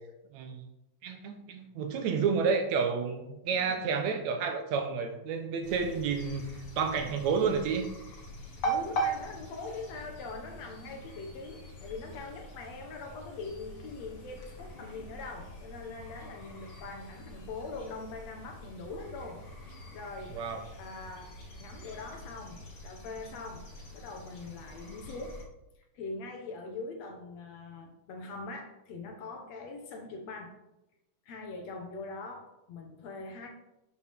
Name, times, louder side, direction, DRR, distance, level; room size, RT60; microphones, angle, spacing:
voice 1, 0.3-0.7 1.0-6.5 6.8-7.9 20.3-20.6, right 5 dB, 70° right, 6 dB, 2.0 m, -30 dB
voice 2, 3.5-3.9 8.6-19.4 19.9-20.3 20.8-21.3 21.6-23.7 23.9-25.4 25.9-30.5 31.3-33.5, left 3 dB, 65° left, 4 dB, 2.1 m, -42 dB
sound 1, 5.6-25.4, right 2 dB, 45° left, 1.7 m, -42 dB
12.0 x 7.2 x 3.5 m, 0.94 s
omnidirectional pair, 3.5 m